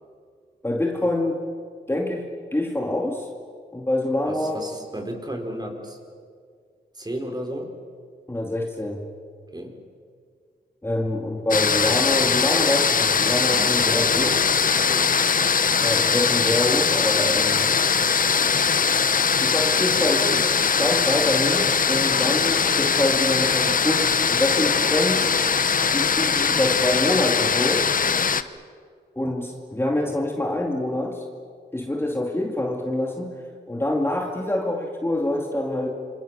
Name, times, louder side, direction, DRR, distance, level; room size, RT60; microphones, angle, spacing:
voice 1, 0.6-1.4 1.9-3.3 3.7-4.6 8.3-9.0 10.8-14.3 15.8-17.7 19.4-25.3 25.9-27.9 29.2-31.3 31.7-33.4 33.7-35.9, left 1 dB, 15° left, 1 dB, 2.4 m, -25 dB
voice 2, 4.3-6.0 6.9-7.8 9.5-9.8 13.5-15.2, right 1 dB, 20° right, 3 dB, 4.4 m, -33 dB
sound 1, 11.5-28.4, left 6 dB, 50° left, 0.9 m, -21 dB
27.5 x 25.5 x 6.6 m, 2.1 s
cardioid pair, 85°, 18 cm